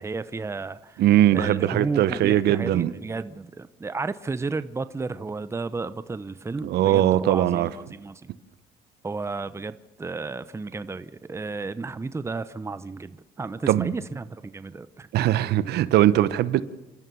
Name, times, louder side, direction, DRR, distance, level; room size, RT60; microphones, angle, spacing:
voice 1, 0.0-1.0 1.3-8.3 9.0-15.1, right 3 dB, 15° right, 0.8 m, -33 dB
voice 2, 1.0-2.9 6.6-7.7 13.7-13.9 15.1-16.6, right 12 dB, 75° right, 1.1 m, -20 dB
28.0 x 13.5 x 7.0 m
cardioid pair, 110°, 17 cm